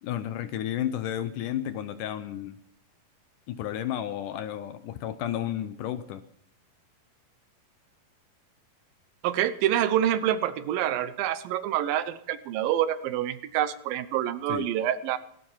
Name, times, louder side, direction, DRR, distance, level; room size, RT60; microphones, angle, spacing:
voice 1, 0.0-2.6 3.5-6.2 14.5-14.7, left 11 dB, 75° left, 11 dB, 2.0 m, -32 dB
voice 2, 9.2-15.2, right 11 dB, 80° right, 14 dB, 2.5 m, -27 dB
17.0 x 15.0 x 5.5 m, 0.69 s
omnidirectional pair, 4.2 m